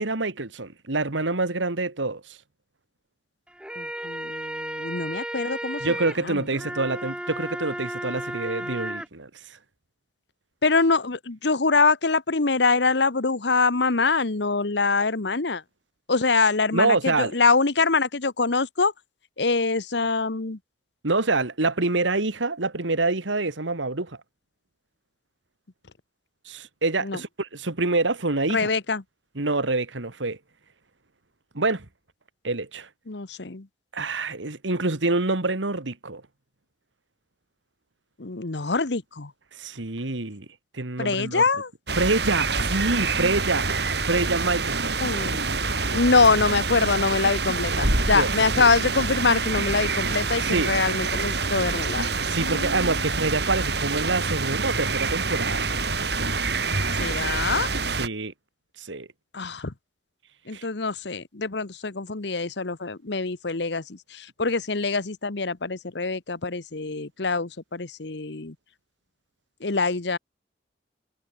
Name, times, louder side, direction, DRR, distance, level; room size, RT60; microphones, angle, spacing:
voice 1, 0.0-2.4 5.8-9.6 16.7-17.4 21.0-24.2 26.5-28.7 29.4-30.4 31.5-31.9 32.4-32.9 33.9-36.2 39.5-40.5 40.7-41.4 42.0-43.7 44.1-44.9 48.0-48.3 48.6-48.7 50.4-50.7 52.2-55.7 57.9-58.3 58.8-59.1 60.5-60.7, right 3 dB, 90° right, 2.0 m, -26 dB
sound 1, 3.5-9.1, right 1 dB, 5° right, 4.2 m, -34 dB
voice 2, 3.8-5.8 6.3-6.4 10.6-15.6 16.1-18.9 19.4-20.6 27.0-27.2 28.5-29.0 33.1-33.6 38.2-39.3 41.0-41.7 45.0-45.4 45.9-52.1 52.4-52.9 57.0-57.7 59.3-59.7 60.5-63.8 64.1-68.5 69.6-70.2, left 4 dB, 70° left, 1.2 m, -24 dB
sound 2, 41.9-58.1, right 4 dB, 65° right, 5.7 m, -26 dB
head